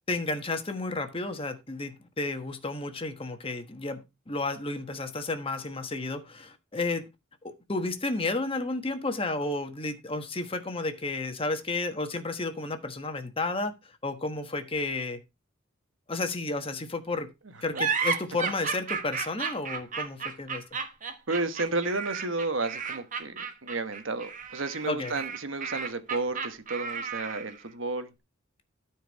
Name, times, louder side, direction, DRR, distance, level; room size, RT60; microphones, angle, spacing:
voice 1, 0.1-7.0 7.7-13.7 14.0-15.2 16.1-17.3 17.6-20.6 24.9-25.2, left 2 dB, 30° left, 1.3 m, -32 dB
sound 1, 17.7-27.6, right 6 dB, 40° right, 1.3 m, -33 dB
voice 2, 21.3-28.1, right 3 dB, 75° right, 1.2 m, -32 dB
13.0 x 4.7 x 4.6 m
head